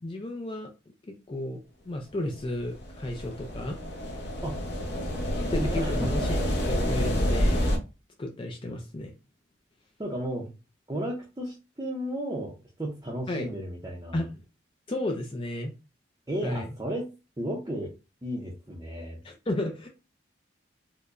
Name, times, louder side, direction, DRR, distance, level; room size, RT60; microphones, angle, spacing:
voice 1, 0.0-0.7 1.1-1.6 1.9-3.8 5.4-6.3 6.7-7.6 8.2-9.1 13.3-13.5 14.1-14.3 14.9-15.7 16.4-16.7 19.2-19.9, left 1 dB, 25° left, 2 dB, 0.4 m, -32 dB
sound 1, 2.5-7.8, equal, 55° left, 0.8 m, -28 dB
voice 2, 5.6-6.3 10.0-10.5 10.9-14.2 16.3-17.1 17.4-17.9 18.2-19.2, right 1 dB, 20° right, -3 dB, 0.6 m, -34 dB
4.6 x 2.1 x 2.5 m, 0.29 s
head